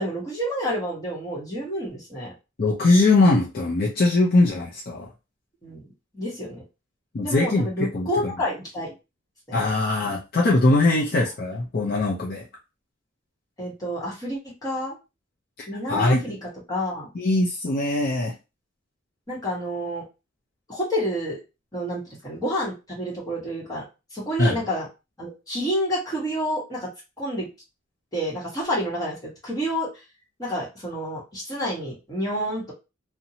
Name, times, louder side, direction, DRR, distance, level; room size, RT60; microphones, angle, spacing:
voice 1, 0.0-2.3 5.6-5.9 6.1-6.6 7.2-8.9 9.5-9.7 13.6-15.0 15.7-17.1 19.3-20.0 20.7-21.4 21.7-23.8 24.1-24.9 25.2-26.9 27.2-27.5 28.1-29.9 30.4-32.7, equal, 20° left, -6 dB, 1.1 m, -29 dB
voice 2, 2.6-5.1 7.1-8.3 9.5-12.4 15.6-16.3 17.1-18.3 24.4-24.6, left 2 dB, 45° left, -3 dB, 0.5 m, -21 dB
2.6 x 2.1 x 2.8 m, 0.27 s
head